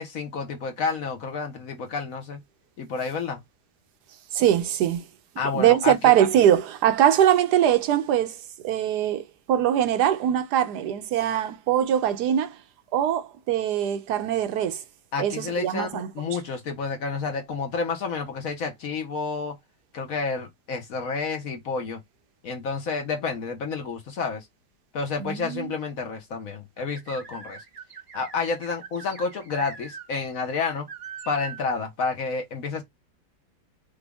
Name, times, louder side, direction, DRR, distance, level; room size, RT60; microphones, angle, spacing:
voice 1, 0.0-2.4 2.8-3.4 5.4-6.1 15.1-19.6 19.9-22.0 22.4-24.4 24.9-27.6 28.1-30.9 31.3-32.8, left 4 dB, 55° left, 1.3 m, -30 dB
voice 2, 4.3-5.1 5.5-8.4 8.6-12.6 12.9-14.8 15.2-16.1 25.2-25.7, right 10 dB, 70° right, 1.3 m, -22 dB
sound 1, 26.8-30.1 30.4-30.5 30.9-31.7, right 6 dB, 45° right, 1.0 m, -42 dB
5.1 x 2.3 x 3.4 m
omnidirectional pair, 1.8 m